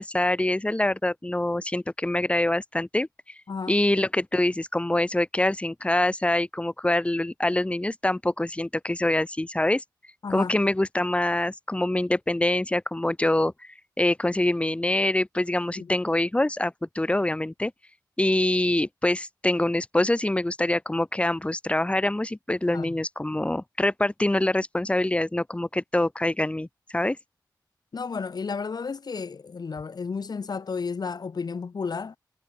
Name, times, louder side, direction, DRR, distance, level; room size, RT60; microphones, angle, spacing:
voice 1, 0.0-3.1 3.7-9.8 10.3-13.5 14.0-17.7 18.2-26.7 26.9-27.2, left 1 dB, 15° left, 5.9 m, -25 dB
voice 2, 3.5-3.8 10.2-10.5 15.8-15.9 22.7-23.0 27.9-32.2, left 5 dB, 60° left, 4.7 m, -32 dB
wide cardioid pair, 85°, 8 cm